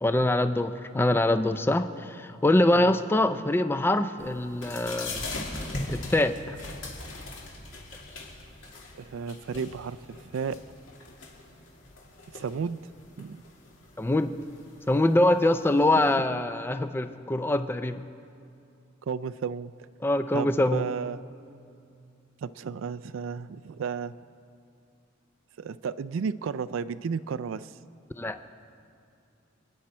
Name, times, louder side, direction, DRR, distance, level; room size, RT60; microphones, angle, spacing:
voice 1, 0.0-5.2 5.9-6.6 14.0-14.3 14.9-18.1 20.0-20.9 28.2-28.4, left 1 dB, 10° left, 10 dB, 0.4 m, -24 dB
sound 1, 4.2-16.1, left 2 dB, 70° left, 2.4 m, -41 dB
voice 2, 9.0-10.6 12.3-12.8 13.2-13.4 16.0-16.2 19.0-19.7 20.3-21.2 22.4-24.1 25.6-27.7, right 6 dB, 80° right, 12 dB, 0.4 m, -33 dB
27.5 x 9.5 x 4.3 m, 2.5 s
head